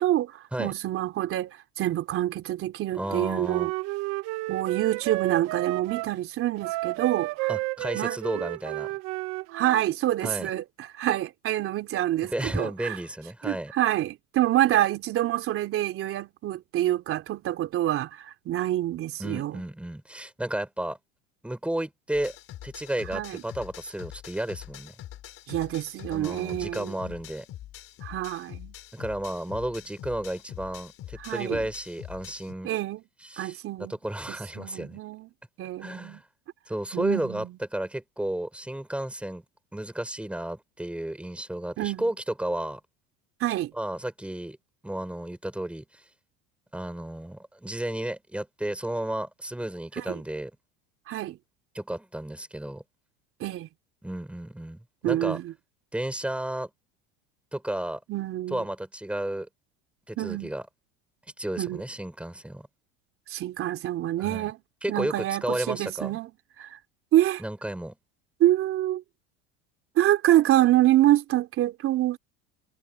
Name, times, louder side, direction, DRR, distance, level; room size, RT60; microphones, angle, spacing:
voice 1, 0.0-3.7 4.5-7.5 7.9-8.2 9.5-13.0 13.4-19.6 23.1-23.4 25.5-27.1 28.0-28.7 31.2-31.7 32.6-33.0 33.4-33.9 34.3-35.3 35.6-36.2 36.9-37.5 41.8-42.1 43.4-43.7 50.0-50.2 51.1-51.4 53.4-53.7 55.0-55.5 58.1-58.6 60.2-60.5 61.6-61.8 63.3-64.6 64.9-66.3 66.6-66.8 67.1-67.4 68.4-69.0 70.0-72.2, right 14 dB, 45° right, 3.2 m, -26 dB
voice 2, 2.9-3.7 7.5-8.9 10.2-10.5 12.2-13.7 19.2-21.0 21.4-22.3 22.6-24.9 26.1-27.5 28.9-32.7 33.2-35.0 35.8-36.2 36.7-39.4 39.7-42.8 43.8-44.6 44.8-45.9 46.7-50.5 51.7-52.8 54.0-55.4 55.9-56.7 57.5-58.0 58.5-59.5 60.1-60.6 61.4-62.7 64.2-64.5 64.8-66.2 67.4-68.0, right 1 dB, 5° right, 5.9 m, -33 dB
Wind instrument woodwind instrument, 3.0-6.1 6.6-9.8, right 21 dB, 65° right, 1.2 m, -32 dB
sound 1, 22.1-32.5, left 13 dB, 45° left, 4.4 m, -44 dB
supercardioid pair, 110°, 29 cm